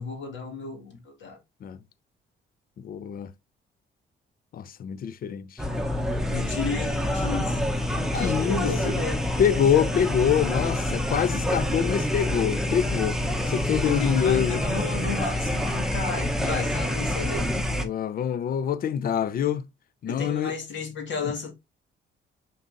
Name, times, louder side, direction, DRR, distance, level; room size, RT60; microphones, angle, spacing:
voice 1, 0.0-1.4 6.3-7.7 8.1-9.2 13.8-17.7 20.1-21.5, left 4 dB, 70° left, 1.8 m, -33 dB
voice 2, 2.8-3.3 4.5-5.6 8.2-8.9 9.4-14.6 17.8-19.7 20.0-20.5 21.2-21.3, left 8 dB, 50° left, 0.5 m, -25 dB
sound 1, 5.6-17.8, left 1 dB, ahead, 0.8 m, -27 dB
5.4 x 3.8 x 2.5 m
cardioid pair, 90°, 20 cm